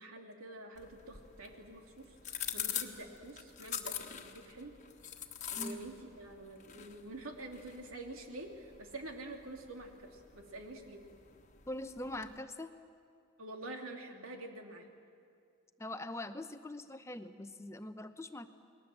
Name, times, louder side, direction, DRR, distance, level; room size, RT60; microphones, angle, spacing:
voice 1, 0.0-4.8 5.5-11.0 13.4-14.9, right 2 dB, 85° right, 3 dB, 2.8 m, -47 dB
sound 1, 0.7-12.4, left 9 dB, 35° left, 1.4 m, -45 dB
voice 2, 11.7-12.7 15.8-18.5, left 1 dB, 15° left, 9 dB, 0.7 m, -42 dB
29.5 x 20.5 x 7.7 m, 2.3 s
head